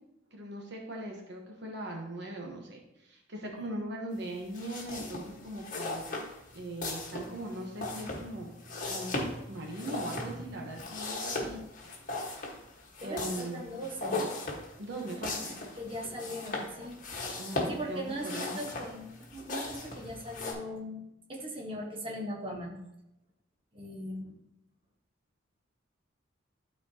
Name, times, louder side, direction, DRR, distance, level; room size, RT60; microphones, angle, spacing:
voice 1, 0.3-6.0 6.5-8.5 8.9-11.4 13.0-13.7 14.8-15.7 17.4-18.6, right 1 dB, 60° right, 0 dB, 1.1 m, -40 dB
sound 1, 4.5-20.5, left 2 dB, 40° left, 1.4 m, -38 dB
voice 2, 13.0-14.3 15.8-17.0 17.7-21.0 21.3-22.8 23.7-24.4, equal, 25° right, -2 dB, 1.3 m, -39 dB
11.5 x 4.3 x 2.8 m, 0.86 s
head